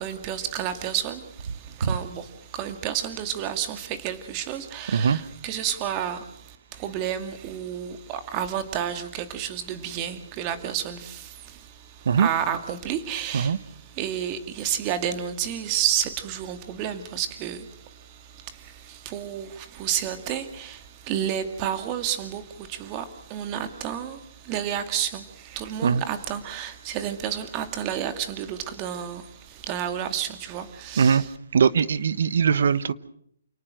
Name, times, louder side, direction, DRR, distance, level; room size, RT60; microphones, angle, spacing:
voice 1, 0.0-1.5 1.8-6.3 6.7-11.7 12.2-13.6 14.0-17.7 18.5-29.2 29.5-31.3, right 10 dB, 25° right, 2.2 m, -30 dB
voice 2, 4.9-5.2 12.0-12.3 13.3-13.6 25.8-26.0 31.0-31.2 31.5-32.9, right 6 dB, 65° right, 1.1 m, -21 dB
29.0 x 19.0 x 6.4 m
hypercardioid pair, 160°, 0 cm